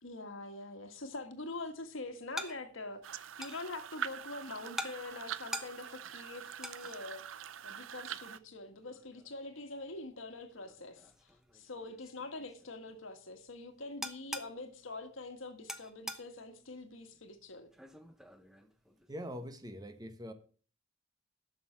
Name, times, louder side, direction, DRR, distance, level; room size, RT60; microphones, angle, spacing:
voice 1, 0.0-17.7, left 2 dB, 85° left, 1.6 m, -45 dB
sound 1, 0.9-19.4, equal, ahead, 0.8 m, -49 dB
sound 2, 3.0-8.4, right 9 dB, 80° right, 0.5 m, -44 dB
voice 2, 19.1-20.3, equal, 20° right, 1.2 m, -43 dB
11.0 x 6.6 x 6.0 m
head